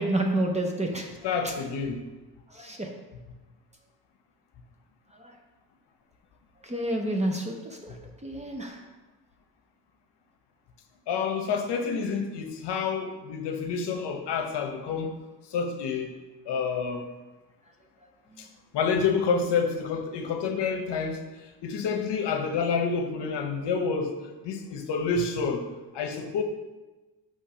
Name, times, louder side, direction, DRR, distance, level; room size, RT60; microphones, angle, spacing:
voice 1, 0.0-1.1 1.4-1.5 2.5-2.9 5.1-5.4 6.6-8.0 8.2-8.8 18.3-18.4, right 1 dB, 15° right, 2 dB, 0.5 m, -29 dB
voice 2, 1.2-2.0 11.1-15.2 15.5-16.1 16.5-17.1 18.4-18.5 18.7-21.3 21.6-24.1 24.4-25.6 25.9-26.4, left 5 dB, 75° left, 5 dB, 0.9 m, -28 dB
6.7 x 3.2 x 5.5 m, 1.2 s
cardioid pair, 165°, 42 cm